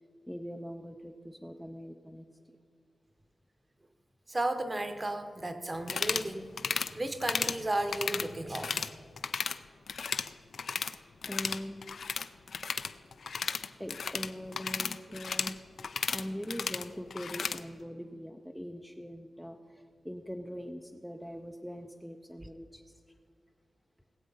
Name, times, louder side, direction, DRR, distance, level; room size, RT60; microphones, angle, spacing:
voice 1, 0.3-2.6 11.3-12.2 13.8-23.2, equal, ahead, 3 dB, 0.5 m, -42 dB
voice 2, 4.3-8.9, right 1 dB, 20° right, 8 dB, 0.9 m, -34 dB
sound 1, 5.8-6.3 6.6-6.9 7.2-7.6 7.9-8.9 9.2-9.6 9.9-11.0 11.2-17.6, left 5 dB, 60° left, 0.5 m, -34 dB
19.5 x 8.4 x 5.5 m, 2.3 s
wide cardioid pair, 170°, 0 cm